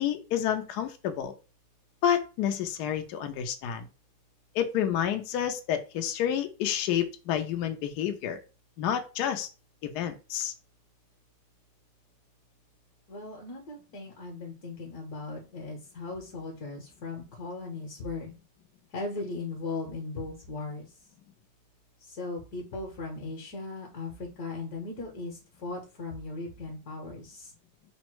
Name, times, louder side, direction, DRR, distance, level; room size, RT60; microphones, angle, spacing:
voice 1, 0.0-1.3 2.0-3.9 4.5-8.4 8.8-9.5 9.8-10.5, left 9 dB, 90° left, 6 dB, 0.8 m, -29 dB
voice 2, 13.1-18.3 18.9-20.9 22.0-27.5, left 3 dB, 55° left, -1 dB, 1.2 m, -38 dB
4.1 x 2.1 x 4.5 m, 0.32 s
omnidirectional pair, 2.4 m